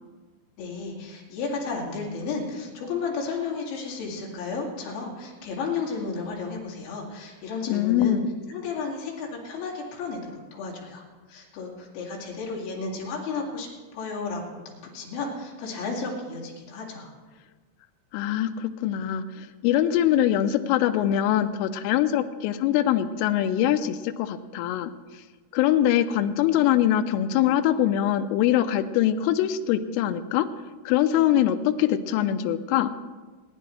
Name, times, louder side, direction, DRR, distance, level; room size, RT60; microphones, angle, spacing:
voice 1, 0.6-8.2 8.5-11.0 11.3-13.7 13.9-14.6 14.9-17.1, left 4 dB, 70° left, -3 dB, 4.5 m, -33 dB
voice 2, 7.7-8.3 18.1-24.9 25.5-30.5 30.9-32.9, left 11 dB, 85° left, 9 dB, 3.2 m, -23 dB
27.0 x 10.0 x 3.2 m, 1.3 s
omnidirectional pair, 5.8 m